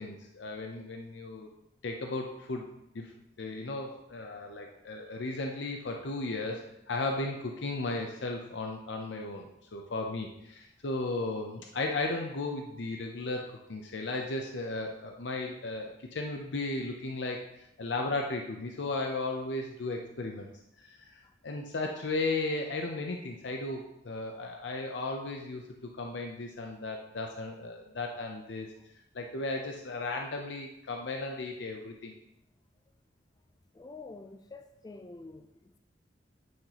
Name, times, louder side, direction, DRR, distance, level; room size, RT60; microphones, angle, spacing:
voice 1, 0.0-1.5 1.8-2.7 2.9-3.1 3.4-20.5 20.8-28.7 29.1-32.1, left 2 dB, 75° left, 2 dB, 0.6 m, -35 dB
voice 2, 33.7-35.8, left 3 dB, 20° left, 7 dB, 0.3 m, -47 dB
9.3 x 5.8 x 2.9 m, 0.84 s
head